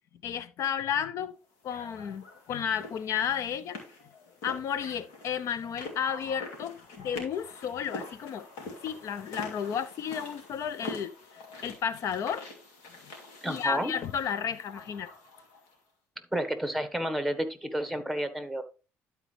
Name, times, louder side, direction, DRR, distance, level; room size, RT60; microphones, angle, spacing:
voice 1, 0.2-1.4 1.6-8.5 8.8-12.5 12.9-13.0 13.5-15.1, left 8 dB, 65° left, 0.7 m, -33 dB
sound 1, 1.7-15.8, left 2 dB, 85° left, 2.7 m, -45 dB
voice 2, 13.4-13.9 16.3-18.6, equal, ahead, 1.4 m, -31 dB
12.0 x 4.6 x 3.3 m
supercardioid pair, 75°, 6 cm